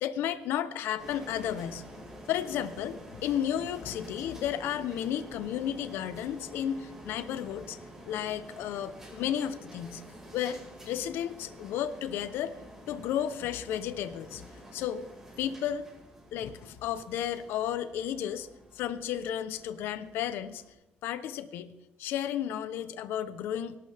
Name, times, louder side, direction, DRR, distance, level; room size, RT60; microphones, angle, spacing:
voice 1, 0.0-1.8 2.3-7.8 8.1-10.0 10.3-12.5 12.9-14.4 14.7-15.1 15.4-15.9 16.3-18.5 18.7-20.6 21.0-21.7 22.0-23.8, left 10 dB, 85° left, 11 dB, 0.9 m, -33 dB
sound 1, 1.0-20.7, equal, 15° right, 4.9 m, -49 dB
24.0 x 12.0 x 3.5 m, 0.93 s
cardioid pair, 140°, 4 cm